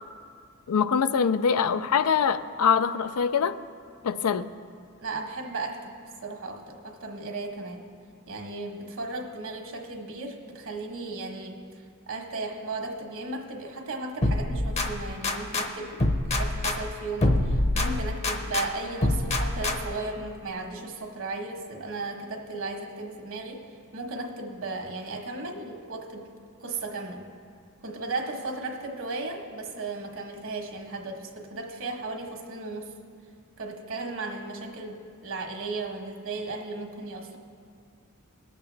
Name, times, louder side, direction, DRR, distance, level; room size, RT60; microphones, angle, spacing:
voice 1, 0.7-3.6 4.0-4.5, left 6 dB, 85° left, 13 dB, 0.4 m, -24 dB
voice 2, 5.0-5.9 6.2-7.9 8.3-11.6 12.1-23.6 23.9-26.3 26.6-27.3 27.8-32.9 33.6-37.4, right 3 dB, 65° right, 2 dB, 1.3 m, -35 dB
sound 1, 14.2-15.7 16.0-18.7 19.0-20.0, left 1 dB, 30° left, 0.8 m, -26 dB
19.0 x 7.4 x 3.4 m, 2.2 s
head